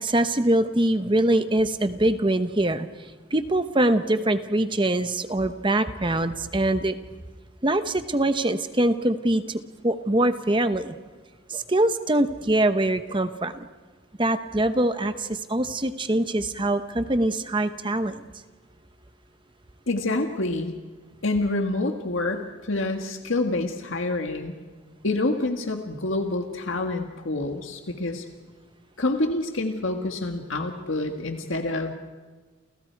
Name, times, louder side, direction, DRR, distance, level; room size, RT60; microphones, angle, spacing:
voice 1, 0.0-2.9 3.3-7.0 7.6-9.4 9.8-10.9 11.5-13.5 14.2-18.1, right 1 dB, 25° right, 9 dB, 1.0 m, -23 dB
voice 2, 19.9-20.7 21.2-24.5 25.0-28.3 29.0-31.9, left 2 dB, 70° left, 4 dB, 1.8 m, -27 dB
29.5 x 29.5 x 4.7 m, 1.4 s
head